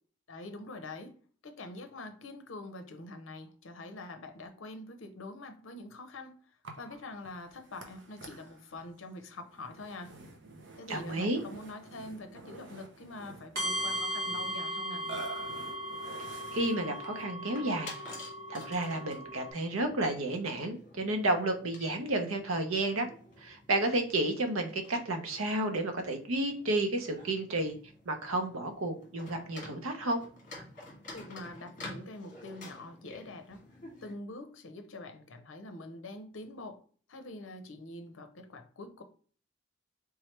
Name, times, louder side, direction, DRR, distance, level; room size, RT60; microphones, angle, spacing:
voice 1, 0.3-1.2 1.4-6.3 6.8-10.1 10.8-15.1 31.1-33.6 34.0-36.8 37.1-39.0, left 2 dB, 70° left, 0.6 m, -45 dB
Burping eructation, 6.6-17.3, right 3 dB, 60° right, 0.7 m, -49 dB
voice 2, 10.9-11.4 16.5-17.9 18.5-23.1 23.4-27.7 28.0-30.2, right 2 dB, 90° right, 0.8 m, -31 dB
sound 1, 13.6-19.5, equal, 45° right, 1.8 m, -37 dB
sound 2, 16.1-34.1, left 2 dB, 40° left, 1.4 m, -51 dB
3.5 x 3.1 x 3.2 m
head